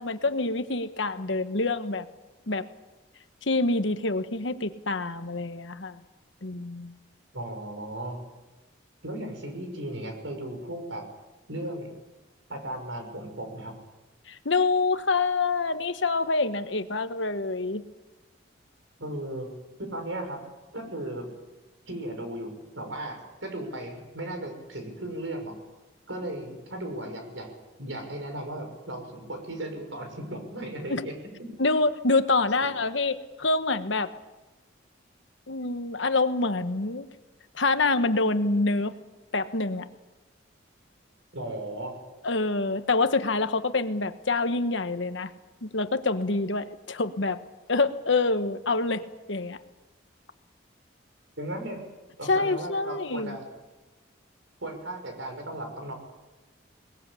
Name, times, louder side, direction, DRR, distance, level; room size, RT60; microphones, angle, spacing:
voice 1, 0.0-2.1 2.5-2.7 3.4-6.0 6.4-6.9 14.3-17.8 30.9-31.1 31.6-34.1 35.5-37.1 37.5-38.9 39.3-39.9 42.2-45.3 45.6-47.4 47.7-49.6 52.2-53.4, left 3 dB, 75° left, 10 dB, 1.3 m, -26 dB
voice 2, 7.3-8.2 9.0-11.0 11.5-11.9 12.5-13.7 19.0-19.5 19.8-20.4 20.7-21.3 21.9-25.5 26.1-27.5 27.8-31.1 31.4-31.5 41.3-42.0 51.4-51.8 52.2-53.5 54.6-55.9, right 1 dB, 80° right, 5 dB, 6.2 m, -36 dB
21.5 x 20.5 x 8.5 m, 1.1 s
head